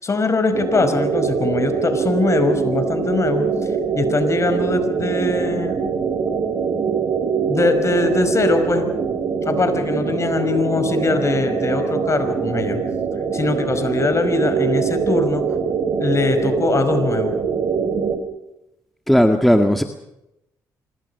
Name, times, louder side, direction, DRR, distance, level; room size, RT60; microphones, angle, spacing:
voice 1, 0.0-3.5 4.0-5.8 7.5-8.9 9.4-12.8 13.3-15.4 16.0-17.3, left 3 dB, 35° left, 8 dB, 5.4 m, -21 dB
sound 1, 0.5-18.2, right 6 dB, 55° right, 3.7 m, -23 dB
voice 2, 19.1-19.8, equal, ahead, 6 dB, 1.9 m, -15 dB
25.5 x 22.5 x 5.7 m, 0.86 s
cardioid pair, 75°, 8 cm